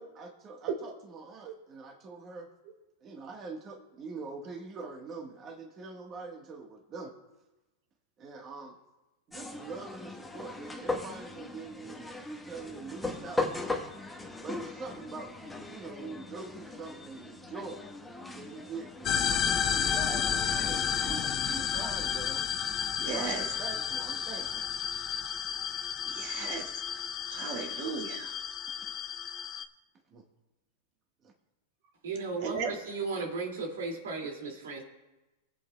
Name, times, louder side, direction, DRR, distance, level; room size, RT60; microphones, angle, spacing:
voice 1, 0.0-2.5 3.0-7.1 8.2-8.8 9.3-12.1 12.4-13.6 14.4-15.3 15.7-17.9 18.4-22.5 23.0-24.6 30.1-30.2 31.2-31.3, right 4 dB, 30° right, 1 dB, 1.4 m, -44 dB
sound 1, 9.3-21.9, left 2 dB, 5° left, 1.2 m, -39 dB
sound 2, 19.0-29.6, left 8 dB, 35° left, 0.7 m, -32 dB
voice 2, 23.0-23.5 26.1-26.7 27.3-28.4 32.4-32.7, right 6 dB, 55° right, 4 dB, 2.0 m, -35 dB
voice 3, 32.0-34.8, right 4 dB, 85° right, 1 dB, 2.3 m, -35 dB
23.5 x 8.3 x 2.3 m, 1.0 s
hypercardioid pair, 125°, 0 cm